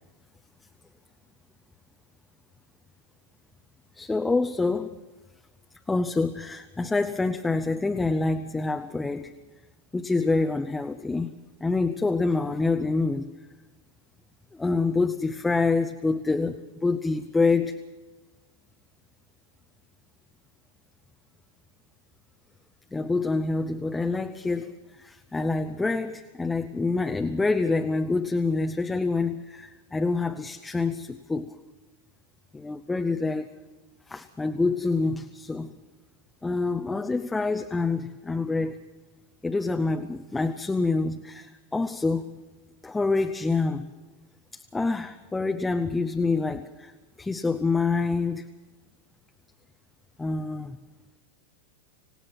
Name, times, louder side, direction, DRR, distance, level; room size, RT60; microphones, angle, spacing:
voice 1, 4.0-4.9 5.9-9.3 9.9-11.3 11.6-13.3 14.5-16.6 16.8-17.8 22.9-31.5 32.5-33.5 34.1-35.7 36.4-38.8 39.4-42.2 42.8-43.9 44.5-46.9 47.2-48.5 50.2-50.8, left 3 dB, 10° left, 7 dB, 0.7 m, -26 dB
26.5 x 17.5 x 6.0 m, 1.2 s
figure-of-eight pair, 90°, 0 cm